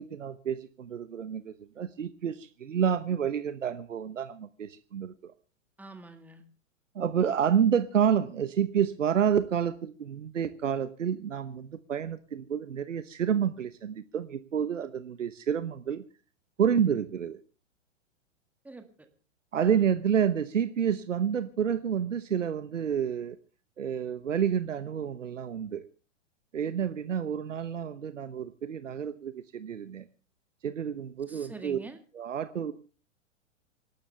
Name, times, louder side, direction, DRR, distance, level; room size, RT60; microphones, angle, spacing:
voice 1, 0.0-5.3 6.9-16.0 16.6-17.4 19.5-23.4 23.8-25.8 26.5-30.1 30.6-31.8 32.1-32.7, right 8 dB, 70° right, 13 dB, 1.1 m, -29 dB
voice 2, 5.8-6.4 18.6-19.1 19.6-19.9 31.3-32.0, right 3 dB, 5° right, 8 dB, 1.8 m, -46 dB
26.5 x 12.5 x 3.3 m, 0.35 s
figure-of-eight pair, 110°, 39 cm